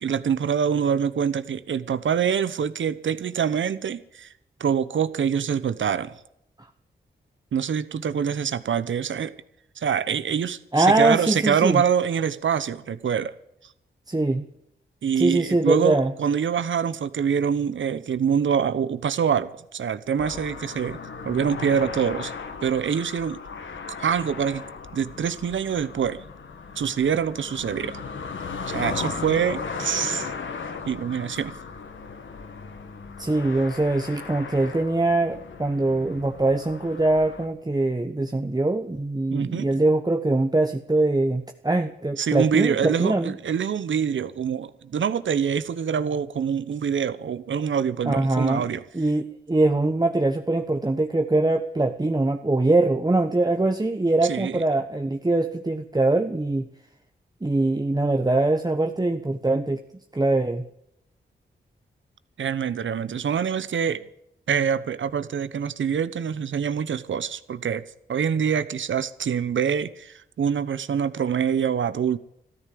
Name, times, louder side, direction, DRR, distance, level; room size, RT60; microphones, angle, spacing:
voice 1, 0.0-4.3 4.6-6.2 7.5-9.3 9.8-13.3 15.0-21.0 21.2-22.3 22.6-23.4 24.0-24.6 24.9-26.2 26.8-28.0 28.7-30.3 30.9-31.5 39.3-39.7 42.2-48.8 54.2-54.6 62.4-64.0 64.5-67.8 68.1-72.2, right 7 dB, 75° right, 1.0 m, -25 dB
voice 2, 10.7-11.8 14.1-14.5 15.2-16.1 33.2-43.3 48.0-48.7 48.9-56.6 57.4-59.8 60.1-60.6, right 2 dB, 20° right, 1.2 m, -22 dB
sound 1, 20.2-37.5, left 5 dB, 80° left, 2.0 m, -36 dB
13.5 x 13.0 x 7.8 m
cardioid pair, 55°, 20 cm